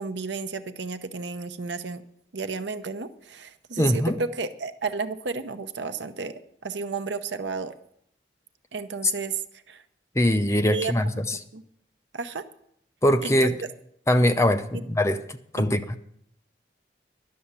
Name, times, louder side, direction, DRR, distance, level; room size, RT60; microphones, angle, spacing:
voice 1, 0.0-2.0 2.3-7.7 8.7-9.4 9.7-9.8 10.7-10.9 11.5-11.6 12.1-12.5 13.2-13.5 14.7-14.8 15.5-15.8, right 4 dB, 85° right, 11 dB, 0.8 m, -32 dB
voice 2, 3.8-4.2 10.2-11.4 13.0-13.5 14.1-16.0, left 1 dB, 15° left, 8 dB, 0.5 m, -22 dB
11.5 x 7.0 x 8.8 m, 0.72 s
head